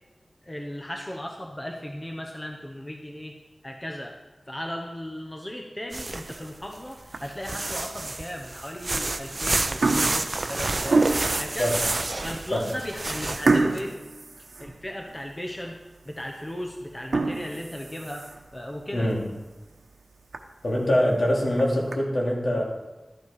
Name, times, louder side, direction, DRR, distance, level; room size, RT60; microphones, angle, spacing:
voice 1, 0.4-3.4 3.6-4.1 4.5-11.1 11.4-11.8 12.2-13.9 14.4-15.8 16.1-18.3 18.5-19.1, equal, 20° left, 1 dB, 1.0 m, -36 dB
sound 1, 5.9-6.7 7.2-13.8, right 2 dB, 45° right, 0.5 m, -29 dB
sound 2, 7.0-7.5 8.1-8.2 9.1-9.3 9.6-11.5 12.1-12.2 12.5-12.7 13.5-15.2 15.6-15.7 16.2-16.3 16.9-18.5 19.0-19.1 19.5-19.6 19.9-20.0 20.3-20.4 21.3-21.9, right 3 dB, 80° right, 0.9 m, -27 dB
voice 2, 18.9-19.3 20.6-22.6, equal, 65° left, -2 dB, 2.5 m, -24 dB
12.5 x 7.1 x 4.9 m, 1.1 s
wide cardioid pair, 85°, 0 cm